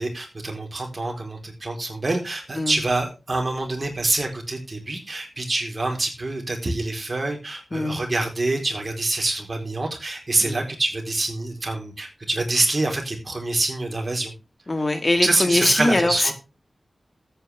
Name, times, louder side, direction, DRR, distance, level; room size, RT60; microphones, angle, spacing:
voice 1, 0.0-14.3 15.2-16.3, right 2 dB, 45° right, 2 dB, 4.3 m, -26 dB
voice 2, 7.7-8.0 10.4-10.6 14.7-16.3, left 2 dB, 40° left, 8 dB, 1.9 m, -22 dB
13.5 x 8.9 x 3.6 m, 0.28 s
wide cardioid pair, 60°, 0 cm